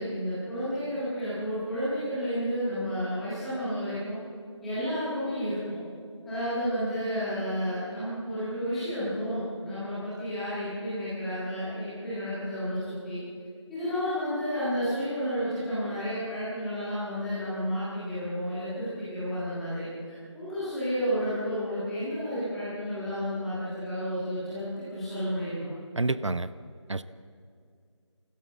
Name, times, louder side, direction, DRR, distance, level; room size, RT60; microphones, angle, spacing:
voice 1, 0.0-4.2 4.6-5.8 6.2-13.2 13.7-19.9 20.3-25.7, equal, ahead, -14 dB, 1.6 m, -31 dB
voice 2, 26.0-26.5 26.9-27.0, right 2 dB, 75° right, 14 dB, 0.8 m, -28 dB
25.5 x 14.5 x 7.4 m, 2.3 s
figure-of-eight pair, 175°, 16 cm